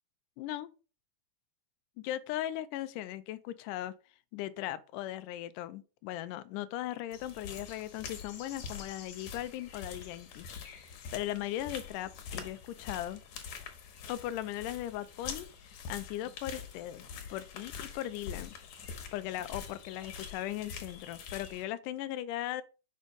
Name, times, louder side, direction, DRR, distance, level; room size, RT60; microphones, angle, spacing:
voice 1, 0.4-0.7 2.0-3.9 4.3-10.5 11.1-13.2 14.1-17.0 17.3-18.5 19.1-22.6, left 13 dB, 90° left, 2.1 m, -38 dB
sound 1, 7.1-21.6, left 6 dB, 70° left, 2.4 m, -45 dB
5.4 x 5.2 x 5.1 m
omnidirectional pair, 3.6 m